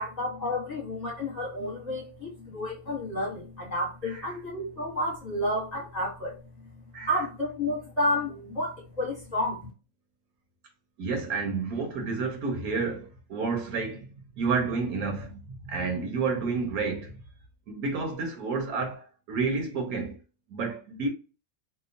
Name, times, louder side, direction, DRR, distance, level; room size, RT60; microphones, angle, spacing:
voice 1, 0.0-6.3 7.0-9.7, left 1 dB, 30° left, 1.1 m, -31 dB
voice 2, 4.0-4.3 6.9-7.1 11.0-14.1 14.3-17.1 17.7-20.2 20.5-21.1, right 4 dB, 75° right, 1.2 m, -30 dB
2.9 x 2.2 x 2.4 m
omnidirectional pair, 1.6 m